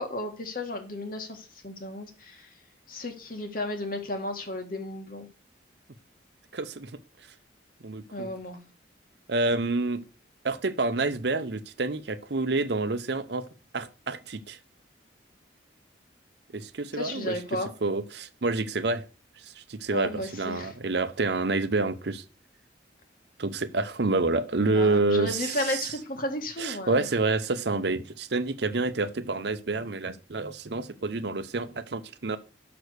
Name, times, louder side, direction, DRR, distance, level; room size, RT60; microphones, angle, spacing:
voice 1, 0.0-2.5 2.9-5.3 8.1-8.7 17.0-17.7 19.9-20.7 24.7-27.0, left 1 dB, 50° left, 1.7 m, -34 dB
voice 2, 6.5-7.3 7.8-8.3 9.3-10.0 10.4-13.5 13.7-14.6 16.5-19.1 19.4-22.2 23.4-25.9 26.6-32.4, right 3 dB, 65° right, 0.7 m, -28 dB
6.3 x 6.0 x 6.6 m
head